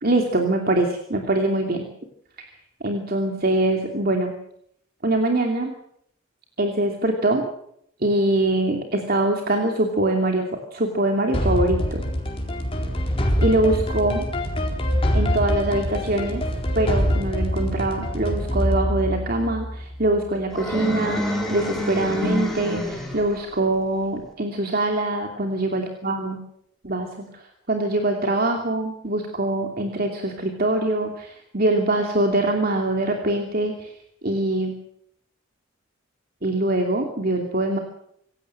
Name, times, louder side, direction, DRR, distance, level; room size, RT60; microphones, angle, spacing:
voice 1, 0.0-1.9 2.4-2.5 2.8-4.4 5.0-5.7 6.6-7.5 8.0-12.0 13.4-14.2 15.1-16.5 16.7-26.4 26.8-27.3 27.7-33.9 34.2-34.8 36.4-37.8, right 2 dB, 45° right, 3 dB, 2.8 m, -23 dB
sound 1, 11.3-20.2, equal, 25° left, 4.2 m, -24 dB
sound 2, 20.5-23.4, equal, ahead, 5.4 m, -27 dB
26.5 x 16.5 x 7.8 m, 0.72 s
head